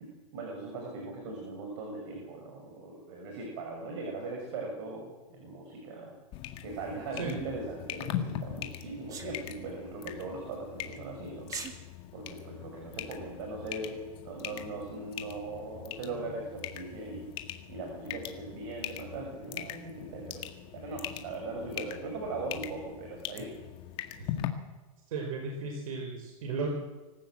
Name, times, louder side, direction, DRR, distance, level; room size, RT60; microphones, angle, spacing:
voice 1, 0.3-6.1 6.6-11.5 12.1-17.3 17.7-20.4 20.7-23.5, right 3 dB, 50° right, 1 dB, 6.8 m, -39 dB
sound 1, 6.3-24.5, left 11 dB, 30° left, 1.8 m, -41 dB
Sneeze, 9.1-9.3 11.4-11.7, right 6 dB, 20° right, 2.3 m, -39 dB
voice 2, 25.1-26.7, right 4 dB, 65° right, 3 dB, 4.9 m, -35 dB
25.0 x 15.0 x 7.7 m, 1.2 s
hypercardioid pair, 155°, 19 cm